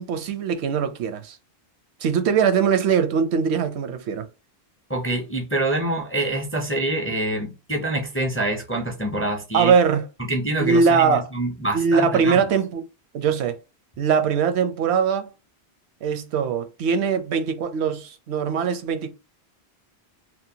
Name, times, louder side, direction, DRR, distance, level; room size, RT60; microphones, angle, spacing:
voice 1, 0.0-1.4 2.0-4.3 9.5-10.1 10.6-11.2 11.7-12.8 13.1-13.6 14.0-15.3 16.0-19.1, right 6 dB, 80° right, 0.8 m, -21 dB
voice 2, 4.9-9.7 10.3-12.5, right 1 dB, 20° left, 0.4 m, -26 dB
2.8 x 2.1 x 2.6 m
omnidirectional pair, 1.1 m